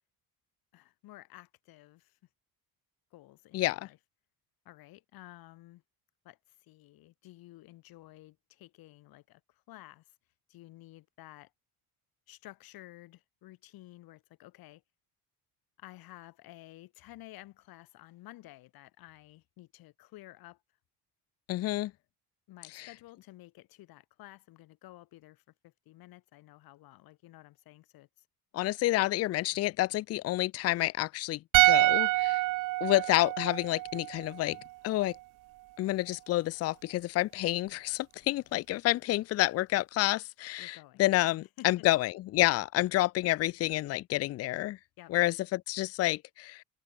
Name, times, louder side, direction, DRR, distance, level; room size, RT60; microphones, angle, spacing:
voice 1, 0.7-2.2 3.1-4.0 4.6-5.8 6.2-10.0 10.5-11.5 12.3-14.8 15.8-20.6 22.5-28.1 40.6-41.9 45.0-45.1, left 17 dB, 65° left, 2.9 m, -53 dB
voice 2, 3.5-3.9 21.5-21.9 22.7-22.9 28.5-32.4 32.8-34.6 34.8-35.1 35.8-44.8 45.1-46.6, left 17 dB, 40° left, 0.5 m, -29 dB
sound 1, 31.5-34.8 35.0-35.2, right 19 dB, 55° right, 0.6 m, -27 dB
cardioid pair, 180°, 38 cm